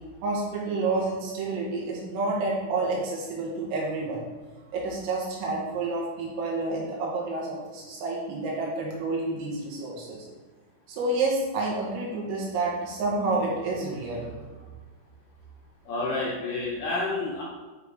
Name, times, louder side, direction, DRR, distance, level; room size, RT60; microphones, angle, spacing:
voice 1, 0.2-4.2 4.7-10.2 10.9-14.3, right 3 dB, 85° right, -4 dB, 4.5 m, -29 dB
voice 2, 15.9-17.4, left 2 dB, 70° left, -5 dB, 2.5 m, -29 dB
10.5 x 3.7 x 4.8 m, 1.3 s
omnidirectional pair, 5.9 m